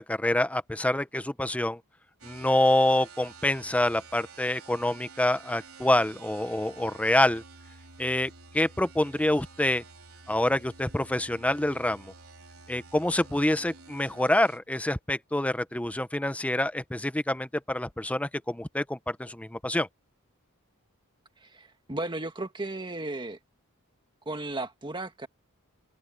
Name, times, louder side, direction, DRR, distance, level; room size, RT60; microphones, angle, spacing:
voice 1, 0.0-1.8 2.2-7.4 8.0-9.8 10.3-12.1 12.7-19.9, left 1 dB, 5° left, 0.6 m, -26 dB
sound 1, 2.2-14.6, right 4 dB, 75° right, 4.2 m, -50 dB
voice 2, 21.4-23.4 24.2-25.3, right 2 dB, 20° right, 1.7 m, -35 dB
open air
head